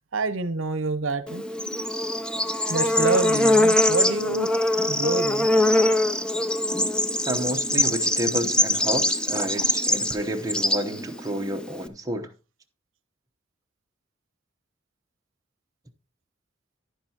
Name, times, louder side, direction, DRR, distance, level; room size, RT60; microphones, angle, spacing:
voice 1, 0.1-1.4 2.7-4.5 4.9-5.8, right 3 dB, 75° right, 0.7 m, -27 dB
Bird / Insect, 1.3-11.9, left 1 dB, 5° left, 0.5 m, -23 dB
voice 2, 7.3-12.3, equal, 20° right, 0.9 m, -30 dB
10.5 x 10.5 x 2.9 m
head